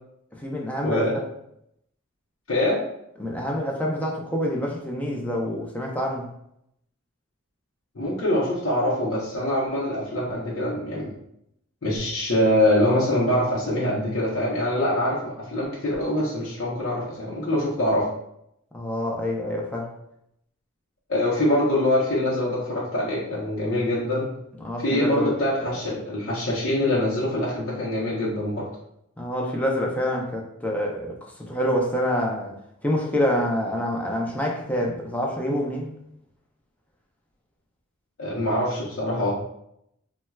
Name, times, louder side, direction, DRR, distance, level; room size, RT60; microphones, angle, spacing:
voice 1, 0.3-1.2 3.2-6.3 18.7-19.9 24.6-25.8 29.2-35.9, equal, 5° left, -1 dB, 0.5 m, -27 dB
voice 2, 0.8-1.1 2.5-2.8 7.9-11.1 11.8-18.1 21.1-24.3 24.8-28.6 38.2-39.3, left 1 dB, 65° left, -7 dB, 0.7 m, -24 dB
4.3 x 2.1 x 2.2 m, 0.76 s
head